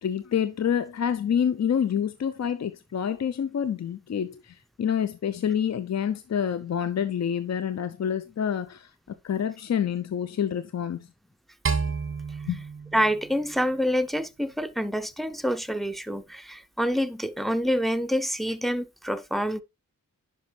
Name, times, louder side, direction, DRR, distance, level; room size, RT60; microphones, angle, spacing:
voice 1, 0.0-8.9 9.2-11.1 12.5-12.6, left 8 dB, 50° left, 0.6 m, -27 dB
sound 1, 11.7-14.0, right 5 dB, 40° right, 1.0 m, -31 dB
voice 2, 12.9-19.6, equal, ahead, 0.6 m, -27 dB
10.5 x 5.5 x 3.2 m
wide cardioid pair, 105°, 34 cm